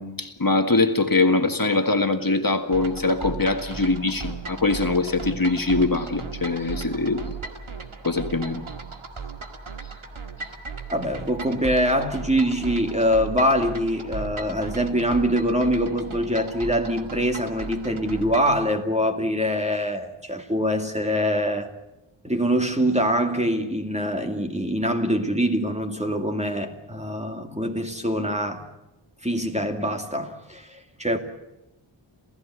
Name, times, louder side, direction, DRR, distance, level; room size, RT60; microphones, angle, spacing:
voice 1, 0.0-7.3 8.0-8.6 10.4-10.5, left 3 dB, 45° left, 1.8 m, -23 dB
sound 1, 2.7-18.6, right 5 dB, 80° right, 2.1 m, -36 dB
voice 2, 10.9-21.7 22.2-28.6 29.2-31.2, equal, 15° right, 2.3 m, -24 dB
27.5 x 15.5 x 8.3 m
wide cardioid pair, 50°, 48 cm